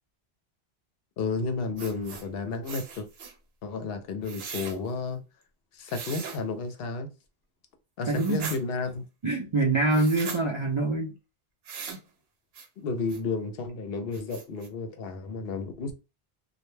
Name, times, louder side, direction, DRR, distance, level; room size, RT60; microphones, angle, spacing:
voice 1, 1.2-3.1 3.6-5.2 5.7-7.1 8.0-9.1 12.8-15.9, left 4 dB, 70° left, 0.7 m, -32 dB
sound 1, 1.8-2.3 2.6-3.3 4.2-4.8 5.9-6.4 8.0-8.6 9.9-10.4 11.6-12.0 12.5-12.7 13.1-13.2 13.7-13.8 14.1-14.7, right 6 dB, 75° right, 0.8 m, -39 dB
voice 2, 8.1-8.5 9.2-11.1, right 2 dB, 50° right, 0.3 m, -25 dB
2.2 x 2.1 x 3.1 m
omnidirectional pair, 1.0 m